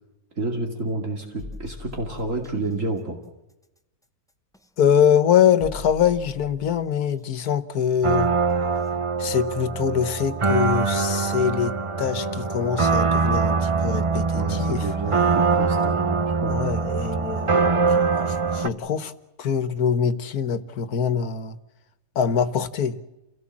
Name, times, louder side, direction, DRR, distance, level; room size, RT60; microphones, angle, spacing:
voice 1, 0.4-3.2 14.3-16.5, right 2 dB, 60° right, 2.8 m, -29 dB
sound 1, 1.4-2.7 4.5-4.7 5.6-6.9 8.7-8.9 9.4-9.5, left 3 dB, 5° left, 0.8 m, -41 dB
voice 2, 4.8-8.3 9.2-14.9 16.5-19.1 19.4-21.6 22.2-23.0, left 8 dB, 90° left, 1.6 m, -23 dB
sound 2, 8.0-18.7, right 4 dB, 30° right, 0.6 m, -23 dB
28.5 x 17.0 x 7.4 m
omnidirectional pair, 1.6 m